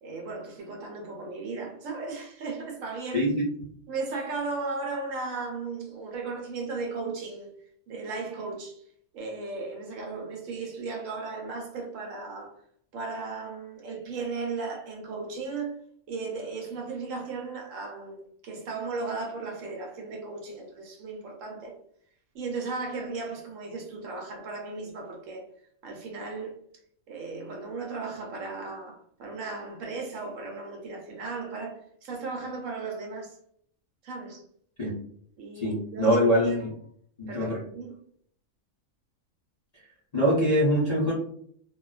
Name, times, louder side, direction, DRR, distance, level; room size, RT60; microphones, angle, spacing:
voice 1, 0.0-3.3 3.9-7.5 7.9-8.8 9.1-12.5 12.9-15.7 16.1-21.7 22.3-25.5 25.8-26.6 27.1-33.3 34.0-34.4 35.4-36.5 37.2-38.0, right 3 dB, 70° right, 1.0 m, -36 dB
voice 2, 35.6-36.7 37.2-37.6 40.1-41.1, equal, 40° left, 0.6 m, -23 dB
2.5 x 2.2 x 2.3 m
omnidirectional pair, 1.5 m